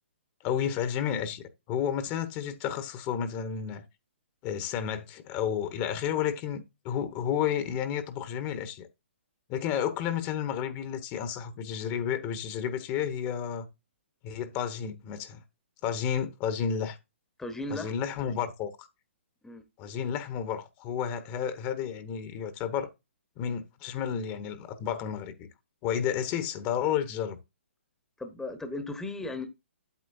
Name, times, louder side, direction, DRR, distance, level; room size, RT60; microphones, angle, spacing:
voice 1, 0.4-3.8 4.4-8.9 9.5-13.7 14.2-15.4 15.8-17.0 17.7-18.9 19.8-22.9 23.4-25.5 25.8-27.4, left 8 dB, 30° left, 1.1 m, -31 dB
voice 2, 17.4-17.9 19.4-19.6 28.2-29.5, left 2 dB, 5° left, 1.1 m, -36 dB
9.0 x 8.4 x 2.6 m
figure-of-eight pair, 130°, 7 cm